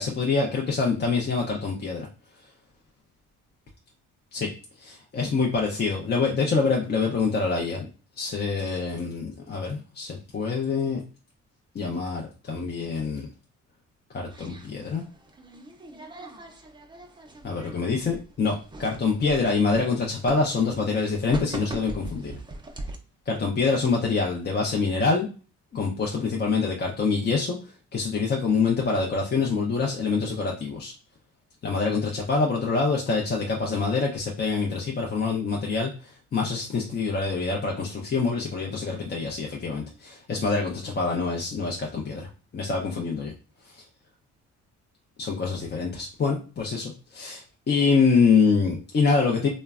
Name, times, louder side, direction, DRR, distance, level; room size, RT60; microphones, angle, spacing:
voice 1, 0.0-2.1 4.3-4.5 4.8-7.9 8.2-11.0 11.7-13.3 14.1-15.0 17.4-22.4 23.3-25.3 25.7-27.6 27.9-30.9 31.6-42.3 42.5-43.3 43.7-43.8 45.2-49.5, left 4 dB, 35° left, -1 dB, 0.5 m, -25 dB
sound 1, 14.3-23.0, right 1 dB, 15° right, 0.5 m, -41 dB
3.1 x 2.1 x 2.3 m, 0.35 s
cardioid pair, 90°, 30 cm